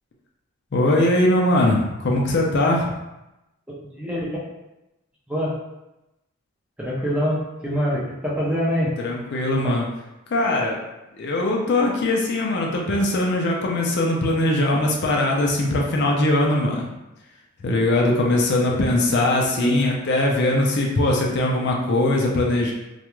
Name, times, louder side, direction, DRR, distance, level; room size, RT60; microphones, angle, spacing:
voice 1, 0.7-2.9 9.0-9.9 10.3-10.8 11.2-16.9 17.6-22.7, left 1 dB, 50° left, -1 dB, 0.4 m, -21 dB
voice 2, 3.9-4.4 5.3-5.6 6.8-8.9 9.6-9.7 19.6-19.8, equal, 5° right, -6 dB, 0.5 m, -24 dB
2.4 x 2.2 x 2.9 m, 0.95 s
head